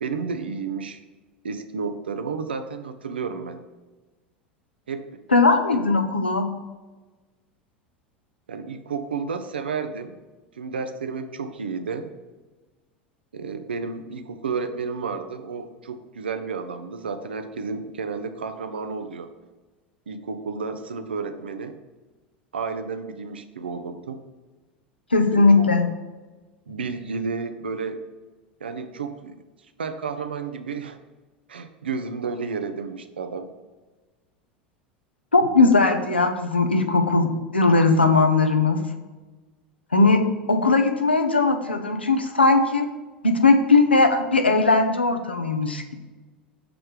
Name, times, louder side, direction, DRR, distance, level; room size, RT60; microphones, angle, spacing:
voice 1, 0.0-1.0 1.4-3.6 4.9-5.2 5.7-5.8 8.5-10.2 10.5-12.1 13.3-19.3 20.1-21.8 22.5-24.2 25.3-25.9 26.7-28.1 28.6-29.4 29.8-31.0 31.5-33.5, right 5 dB, 80° right, 9 dB, 0.4 m, -31 dB
voice 2, 5.3-6.5 25.1-25.9 35.3-38.8 39.9-42.9 43.2-45.9, left 3 dB, 90° left, 6 dB, 0.5 m, -19 dB
6.0 x 3.2 x 4.9 m, 1.3 s
figure-of-eight pair, 80°, 6 cm